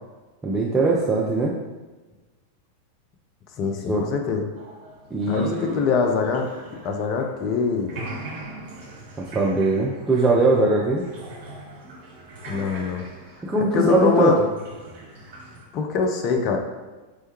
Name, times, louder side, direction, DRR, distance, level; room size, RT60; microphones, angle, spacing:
voice 1, 0.4-1.5 3.9-4.0 5.1-5.7 9.2-11.1 13.4-14.3, right 2 dB, 15° right, -5 dB, 0.5 m, -21 dB
voice 2, 3.6-4.5 5.3-6.5 6.8-7.9 12.5-13.0 13.7-14.4 15.7-16.6, left 5 dB, 40° left, 3 dB, 0.5 m, -23 dB
sound 1, 4.6-7.5 7.8-15.7, right 2 dB, 50° right, 0.7 m, -41 dB
4.4 x 2.2 x 2.9 m, 1.2 s
figure-of-eight pair, 90°, 0 cm